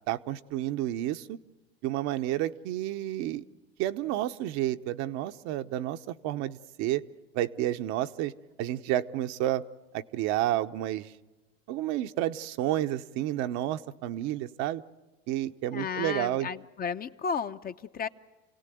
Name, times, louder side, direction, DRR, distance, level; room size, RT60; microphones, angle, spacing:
voice 1, 0.1-1.4 1.8-3.4 3.8-7.0 7.3-8.3 8.6-9.6 9.9-11.1 11.7-14.8 15.3-16.5, right 13 dB, 60° right, 9 dB, 1.0 m, -30 dB
voice 2, 15.7-18.1, left 6 dB, 30° left, 10 dB, 0.9 m, -33 dB
29.0 x 17.5 x 9.3 m, 1.2 s
hypercardioid pair, 100°, 31 cm